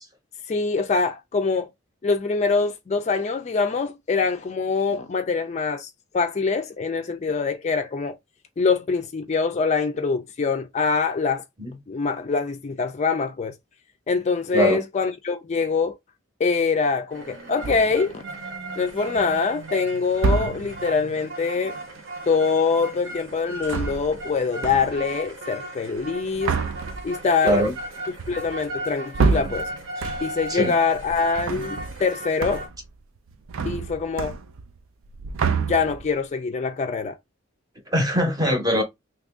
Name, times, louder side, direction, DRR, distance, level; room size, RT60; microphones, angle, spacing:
voice 1, 0.5-1.7 2.0-8.2 8.6-11.4 11.9-13.6 14.1-15.9 16.4-18.2 18.8-21.8 22.3-26.5 27.0-27.6 28.3-29.7 30.2-32.6 33.6-34.4 35.6-37.2, left 4 dB, 35° left, 0.3 m, -24 dB
sound 1, 17.1-32.7, right 1 dB, 65° right, 1.0 m, -36 dB
sound 2, 17.6-18.1 18.9-19.4 20.1-20.9 23.5-24.3 24.6-25.1 26.0-30.5 30.9-32.1 32.4-32.9 33.2-34.8 35.0-36.2, right 4 dB, 85° right, 0.4 m, -28 dB
voice 2, 27.4-27.7 30.5-30.7 37.9-38.8, equal, 20° right, 0.8 m, -21 dB
2.9 x 2.5 x 3.5 m
head